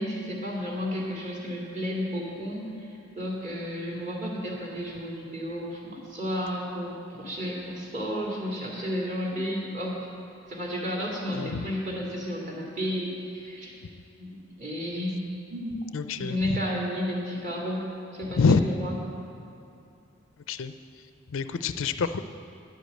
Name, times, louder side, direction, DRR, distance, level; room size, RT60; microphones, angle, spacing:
voice 1, 0.0-10.1 10.5-13.7 14.2-15.2 15.5-15.8 16.2-18.9, equal, 35° right, -3 dB, 2.4 m, -32 dB
voice 2, 15.9-16.6 18.3-18.6 20.5-20.7 21.3-22.2, left 5 dB, 70° left, 11 dB, 0.5 m, -26 dB
10.5 x 8.2 x 7.9 m, 2.7 s
head